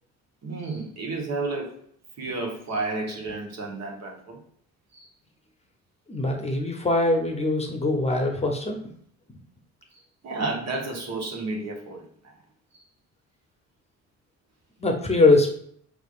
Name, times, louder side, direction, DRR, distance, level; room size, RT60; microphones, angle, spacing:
voice 1, 0.4-1.8 2.2-4.4 4.9-5.1 9.9-12.3, right 3 dB, 60° right, 0 dB, 1.2 m, -32 dB
voice 2, 6.1-8.8 14.8-15.5, left 2 dB, 20° left, 3 dB, 0.8 m, -22 dB
5.0 x 3.3 x 2.5 m, 0.63 s
cardioid pair, 90°, 30 cm